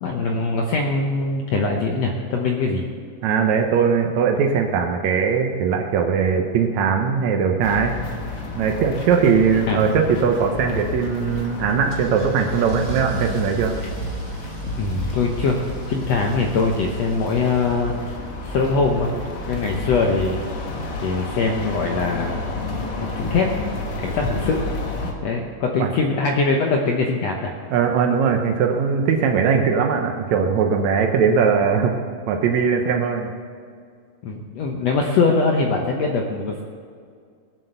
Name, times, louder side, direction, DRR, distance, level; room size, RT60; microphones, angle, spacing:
voice 1, 0.0-2.8 9.2-9.4 9.7-10.0 14.7-15.6 15.9-17.9 18.4-19.1 19.5-20.4 21.0-22.6 23.0-23.5 24.0-24.6 25.2-27.5 34.2-36.6, left 4 dB, 85° left, 1 dB, 1.4 m, -22 dB
voice 2, 3.2-7.9 8.5-13.7 25.8-25.9 27.7-31.9 32.3-33.3, right 6 dB, 85° right, 3 dB, 1.5 m, -20 dB
sound 1, 7.6-25.1, left 3 dB, 50° left, 1.8 m, -31 dB
Car / Engine starting / Accelerating revving vroom, 11.9-18.4, right 2 dB, 40° right, 1.5 m, -35 dB
21.0 x 7.5 x 6.8 m, 2.1 s
omnidirectional pair, 4.5 m